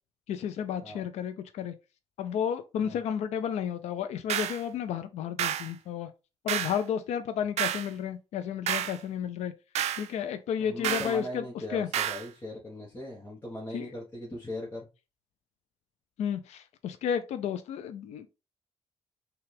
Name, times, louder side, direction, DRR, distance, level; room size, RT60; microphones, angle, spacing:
voice 1, 0.3-1.7 2.2-6.1 6.4-9.5 10.0-11.4 11.7-11.9 13.7-13.9 16.2-18.3, left 8 dB, 80° left, 0.4 m, -32 dB
sound 1, 4.3-4.6 5.4-5.7 6.5-6.8 7.6-7.9 8.7-9.0 9.8-10.1 10.8-11.2 11.9-12.3, right 11 dB, 75° right, 0.4 m, -30 dB
voice 2, 10.6-14.9, left 1 dB, 20° left, 1.0 m, -39 dB
5.8 x 2.4 x 3.3 m
cardioid pair, 165°, 11 cm